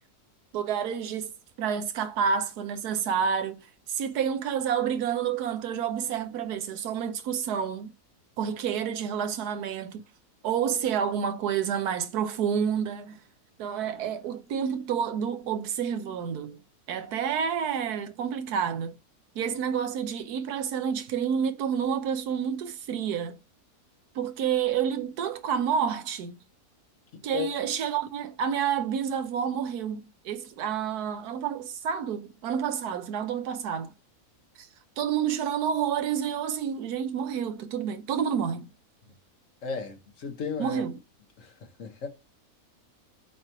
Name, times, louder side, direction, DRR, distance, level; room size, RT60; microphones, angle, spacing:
voice 1, 0.5-3.6 3.9-7.9 8.4-10.0 10.4-13.2 13.6-16.6 16.9-19.0 19.3-23.4 24.1-26.4 27.2-33.9 34.6-34.7 35.0-38.7 40.6-41.0, right 7 dB, 90° right, 1.3 m, -29 dB
voice 2, 27.1-27.5 39.6-40.8 41.4-41.5 41.8-42.1, left 6 dB, 60° left, 1.4 m, -34 dB
7.8 x 3.0 x 5.7 m
omnidirectional pair, 1.6 m